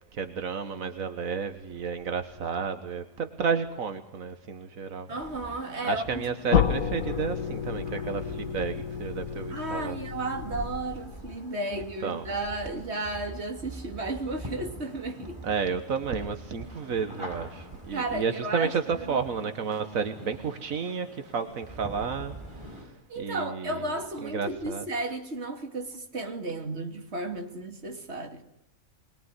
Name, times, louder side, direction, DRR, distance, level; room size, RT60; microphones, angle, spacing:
voice 1, 0.1-5.1 5.9-10.0 11.7-12.3 15.4-22.4 22.7-22.9 23.2-23.8 24.2-24.8, right 6 dB, 85° right, 1.8 m, -31 dB
sound 1, 5.1-22.8, right 1 dB, 20° right, 7.7 m, -44 dB
voice 2, 5.1-6.2 6.5-6.6 9.5-15.4 17.9-18.7 19.0-19.2 23.1-28.4, right 2 dB, 55° right, 2.9 m, -33 dB
sound 2, 6.5-11.3, left 7 dB, 85° left, 1.8 m, -30 dB
24.0 x 21.0 x 9.8 m
omnidirectional pair, 1.4 m